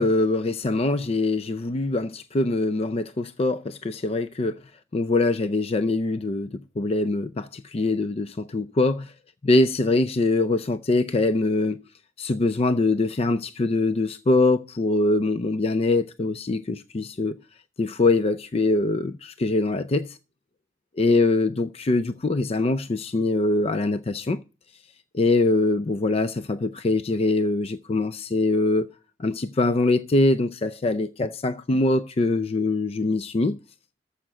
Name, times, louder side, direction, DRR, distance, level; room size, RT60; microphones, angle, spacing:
voice 1, 0.0-4.6 4.9-9.1 9.4-11.8 12.2-17.4 17.8-20.2 21.0-24.4 25.1-28.9 29.2-33.6, left 2 dB, 35° left, 0.4 m, -23 dB
14.0 x 5.7 x 6.1 m
head